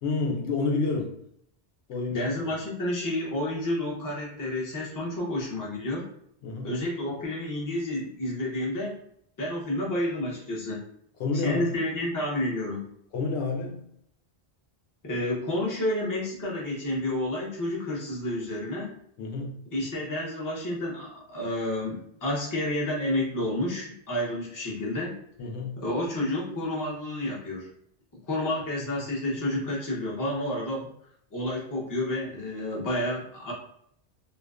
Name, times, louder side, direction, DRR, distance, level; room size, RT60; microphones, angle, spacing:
voice 1, 0.0-1.2 1.9-2.3 6.4-6.7 11.2-11.7 13.1-13.8 19.2-19.6 25.4-25.7, left 3 dB, 80° left, 1 dB, 0.9 m, -29 dB
voice 2, 2.1-6.1 6.6-9.0 9.4-10.8 11.3-12.9 15.0-18.9 19.7-25.1 25.8-27.7 28.3-30.9 31.3-33.5, left 1 dB, 20° left, -4 dB, 0.6 m, -30 dB
2.5 x 2.2 x 2.3 m, 0.70 s
omnidirectional pair, 1.1 m